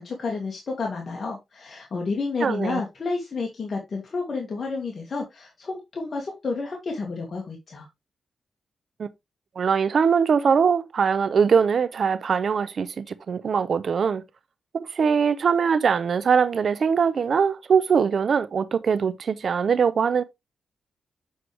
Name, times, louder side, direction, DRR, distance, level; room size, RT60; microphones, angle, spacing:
voice 1, 0.0-7.9, left 4 dB, 50° left, 2.0 m, -30 dB
voice 2, 2.4-2.8 9.0-9.1 9.6-14.2 14.7-20.2, right 6 dB, 60° right, 0.7 m, -22 dB
7.9 x 4.8 x 3.4 m
cardioid pair, 90°, 0 cm